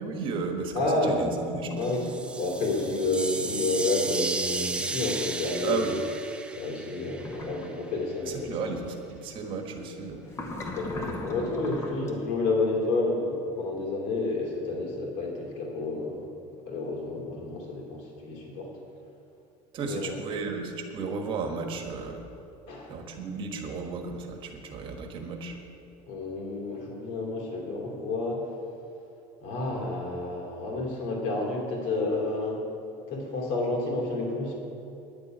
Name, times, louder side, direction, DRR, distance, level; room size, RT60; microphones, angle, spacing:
voice 1, 0.0-2.0 5.6-5.9 8.3-10.2 19.7-22.3 22.9-25.6, right 4 dB, 35° right, 4 dB, 1.4 m, -34 dB
voice 2, 0.7-1.2 1.8-2.1 2.3-6.0 6.6-8.7 10.6-18.7 19.8-20.1 22.7-23.0 26.1-28.4 29.4-32.6 33.1-34.5, left 2 dB, 60° left, -1 dB, 3.2 m, -30 dB
sound 1, 1.8-7.7, right 3 dB, 5° right, 0.5 m, -34 dB
Hookah bubling, 7.2-7.7 10.3-12.1, left 2 dB, 20° left, 1.3 m, -37 dB
10.5 x 7.0 x 9.2 m, 2.8 s
cardioid pair, 170°, 14 cm